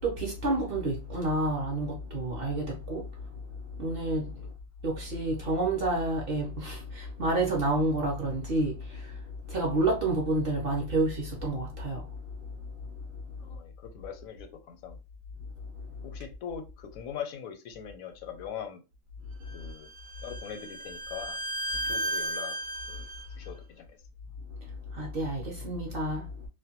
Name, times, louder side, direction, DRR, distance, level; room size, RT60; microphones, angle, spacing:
voice 1, 0.0-3.3 3.6-4.4 4.8-12.4 15.7-15.9 24.6-26.5, right 2 dB, 55° right, 0.7 m, -30 dB
voice 2, 13.4-15.0 16.0-18.8 19.5-19.9 20.2-21.4 21.8-22.6 22.9-23.1 23.3-24.0, left 8 dB, 85° left, 1.0 m, -41 dB
Bowed string instrument, 19.5-23.3, right 1 dB, 85° right, 0.4 m, -35 dB
2.4 x 2.2 x 2.8 m
omnidirectional pair, 1.4 m